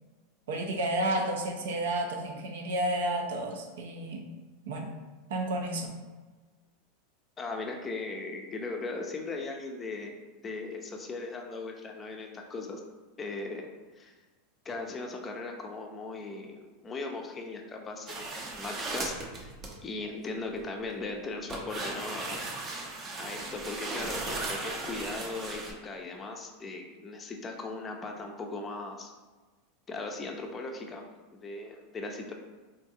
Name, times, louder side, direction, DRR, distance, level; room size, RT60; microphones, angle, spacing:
voice 1, 0.5-4.3 4.7-5.0 5.3-5.9, right 1 dB, 85° right, 2 dB, 0.4 m, -31 dB
voice 2, 7.4-10.2 10.4-12.8 13.2-13.7 13.9-14.1 14.7-19.1 19.4-19.5 19.8-22.4 23.2-29.1 29.9-32.3, left 3 dB, 20° left, 2 dB, 0.4 m, -38 dB
sound 1, 18.1-19.8 20.5-20.9 21.5-25.7, right 2 dB, 30° right, 0.5 m, -37 dB
3.7 x 2.3 x 2.7 m, 1.3 s
supercardioid pair, 130°, 0 cm